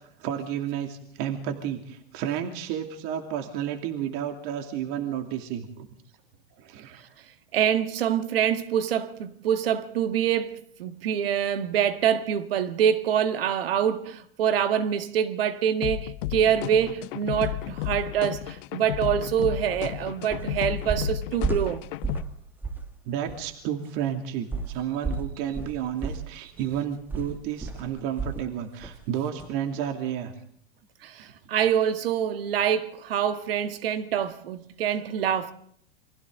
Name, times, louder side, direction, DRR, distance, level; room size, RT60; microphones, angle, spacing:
voice 1, 0.0-5.9 6.6-7.0 23.1-30.3 31.2-31.3, right 9 dB, 50° right, 2.7 m, -31 dB
voice 2, 7.5-21.8 31.0-35.5, right 9 dB, 80° right, 1.9 m, -25 dB
sound 1, 15.8-22.2, left 17 dB, 65° left, 0.9 m, -33 dB
sound 2, 19.7-19.9 20.3-20.5 20.9-22.3 22.6-22.9 23.3-23.4 24.5-28.5 28.8-29.0 29.4-29.5, right 4 dB, 5° right, 1.8 m, -32 dB
29.5 x 24.0 x 3.9 m
hypercardioid pair, 125°, 29 cm